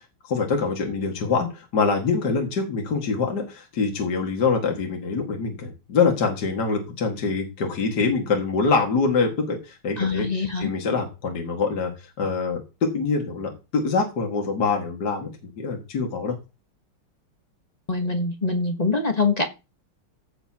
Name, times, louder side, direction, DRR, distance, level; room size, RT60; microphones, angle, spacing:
voice 1, 0.2-10.3 10.6-11.9 12.2-15.3 15.6-16.4, left 4 dB, 50° left, 2 dB, 2.5 m, -24 dB
voice 2, 10.0-10.7 17.9-19.5, left 3 dB, 25° left, 5 dB, 1.0 m, -24 dB
16.0 x 7.1 x 2.9 m, 0.28 s
omnidirectional pair, 2.4 m